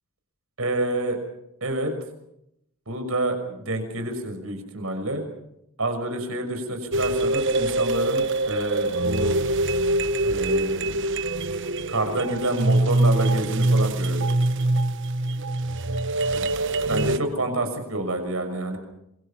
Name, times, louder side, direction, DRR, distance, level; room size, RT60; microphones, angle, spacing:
voice 1, 0.6-1.2 1.6-1.9 2.9-5.2 5.8-9.3 10.2-10.9 11.9-14.4 16.3-16.5 16.8-18.8, right 1 dB, 80° right, 6 dB, 6.2 m, -28 dB
sound 1, 6.9-17.2, right 2 dB, 60° right, 1.1 m, -24 dB
26.5 x 24.0 x 5.9 m, 0.81 s
head